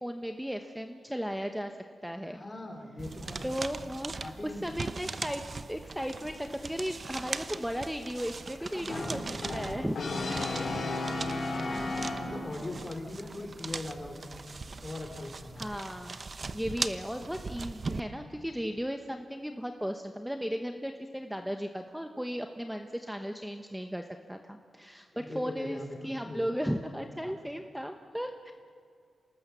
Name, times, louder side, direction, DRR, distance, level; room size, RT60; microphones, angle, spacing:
voice 1, 0.0-2.4 3.4-9.2 9.5-10.0 15.6-16.2 16.5-28.5, equal, 5° right, 5 dB, 1.0 m, -36 dB
voice 2, 2.3-3.5 4.2-4.8 8.7-9.2 10.3-11.0 11.5-14.4 14.8-15.7 25.1-26.5 27.2-27.3, left 2 dB, 30° left, 4 dB, 3.5 m, -41 dB
sound 1, 3.0-18.0, right 4 dB, 45° right, 0.9 m, -40 dB
Brass instrument, 8.9-12.7, left 2 dB, 60° left, 4.9 m, -34 dB
27.0 x 19.0 x 6.9 m, 2.3 s
cardioid pair, 70°, 0 cm